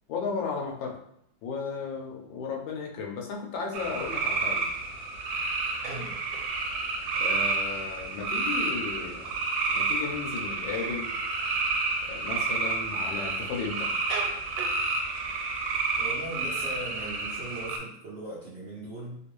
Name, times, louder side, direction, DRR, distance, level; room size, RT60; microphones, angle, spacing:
voice 1, 0.1-1.0 1.4-4.6 7.2-9.4 9.7-11.1 12.1-13.9, left 5 dB, 85° left, 0 dB, 1.4 m, -34 dB
sound 1, 3.7-17.8, right 3 dB, 85° right, 1.3 m, -30 dB
voice 2, 5.8-6.2 15.9-19.2, right 1 dB, 45° right, -7 dB, 0.9 m, -39 dB
3.4 x 2.5 x 3.1 m, 0.72 s
omnidirectional pair, 2.1 m